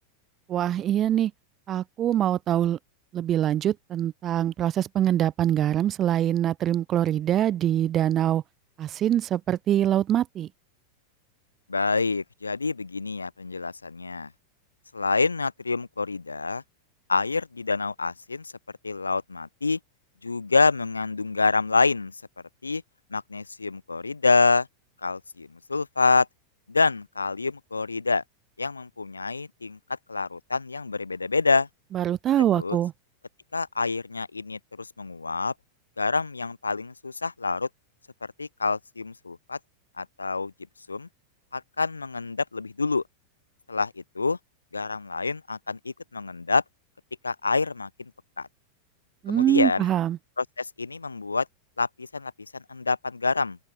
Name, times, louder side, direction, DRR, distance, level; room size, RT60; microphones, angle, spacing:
voice 1, 0.5-1.3 1.7-2.8 3.1-8.4 8.8-10.5 31.9-32.9 49.2-50.2, right 11 dB, 30° right, 4.5 m, -24 dB
voice 2, 11.7-14.3 14.9-16.6 17.1-18.5 18.8-19.8 20.2-22.1 22.6-22.8 23.1-24.7 25.0-26.3 26.7-28.2 28.6-29.8 30.1-31.7 32.5-32.8 33.5-35.5 36.0-37.7 38.4-39.6 40.0-40.5 40.9-41.1 41.5-43.0 43.7-44.4 44.7-46.6 47.2-48.1 48.4-48.5 49.3-49.8 50.4-51.5 51.8-53.6, left 4 dB, 80° left, 2.6 m, -27 dB
open air
figure-of-eight pair, 90°, 0 cm